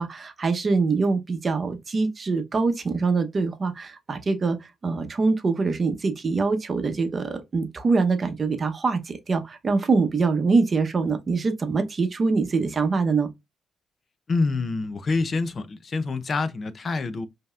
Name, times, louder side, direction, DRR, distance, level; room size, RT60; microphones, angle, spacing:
voice 1, 0.0-4.6 4.8-13.3, right 4 dB, 30° right, 0.8 m, -24 dB
voice 2, 14.3-17.3, left 3 dB, 35° left, 0.5 m, -26 dB
5.2 x 2.8 x 2.4 m
cardioid pair, 140°, 0 cm